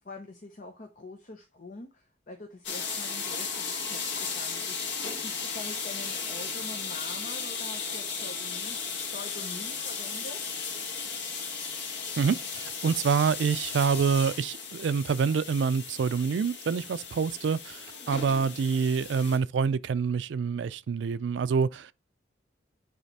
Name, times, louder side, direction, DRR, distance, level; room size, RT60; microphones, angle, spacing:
voice 1, 0.0-10.4, left 2 dB, 50° left, 0.9 m, -45 dB
sound 1, 2.6-19.4, left 5 dB, 75° left, 1.5 m, -35 dB
voice 2, 12.2-21.9, right 6 dB, 75° right, 0.4 m, -27 dB
9.1 x 3.3 x 4.1 m
head